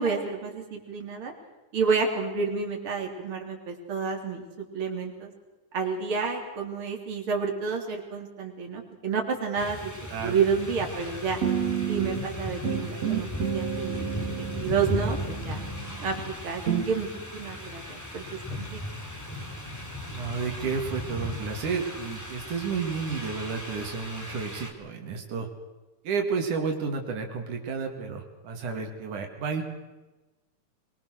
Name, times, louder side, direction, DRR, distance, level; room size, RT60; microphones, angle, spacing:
voice 1, 0.0-1.3 1.7-5.3 5.7-9.9 10.2-11.4 11.9-14.2 14.5-15.6 16.0-18.8, right 5 dB, 45° right, 2 dB, 4.0 m, -30 dB
sound 1, 9.6-24.7, left 1 dB, 5° left, 2.4 m, -37 dB
sound 2, 11.4-12.3 12.6-16.2 16.7-16.9, right 8 dB, 60° right, 3.4 m, -30 dB
voice 2, 20.1-25.5 26.0-29.6, right 5 dB, 90° right, 3 dB, 3.9 m, -31 dB
23.0 x 22.5 x 6.4 m, 1.1 s
omnidirectional pair, 3.4 m